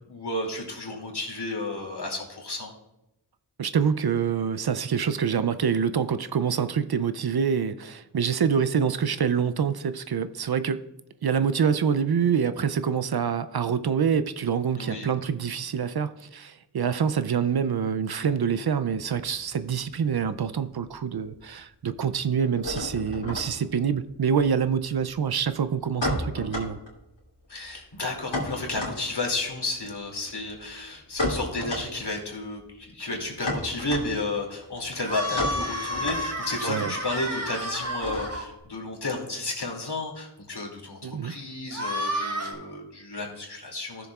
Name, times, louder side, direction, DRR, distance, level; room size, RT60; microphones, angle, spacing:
voice 1, 0.0-2.7 14.8-15.1 27.5-44.1, left 2 dB, 65° left, 2.5 m, -32 dB
voice 2, 3.6-10.8 11.2-26.8 36.6-36.9 41.0-41.3, right 7 dB, 60° right, 0.5 m, -26 dB
sound 1, 18.8-20.4 20.6-21.3 21.6-38.6, left 1 dB, 85° left, 2.7 m, -35 dB
sound 2, 35.0-38.4 41.7-42.5, equal, 35° right, 1.8 m, -31 dB
17.0 x 7.0 x 2.4 m
wide cardioid pair, 60°, 43 cm